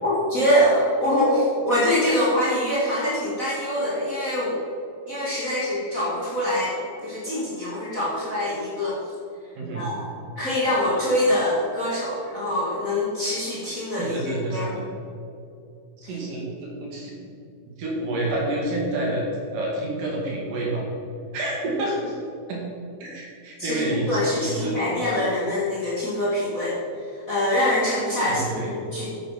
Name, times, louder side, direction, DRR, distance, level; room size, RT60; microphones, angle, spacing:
voice 1, 0.0-4.6 5.1-9.0 9.7-10.1 10.4-14.7 16.0-16.2 23.6-26.8 27.3-29.1, left 1 dB, 25° left, -7 dB, 2.3 m, -24 dB
voice 2, 14.0-14.8 16.0-17.2 17.8-19.2 19.5-20.8 21.3-22.2 22.5-22.6 23.0-24.8 28.2-28.7, right 2 dB, 70° right, -3 dB, 3.7 m, -28 dB
9.1 x 9.0 x 5.9 m, 2.6 s
omnidirectional pair, 4.0 m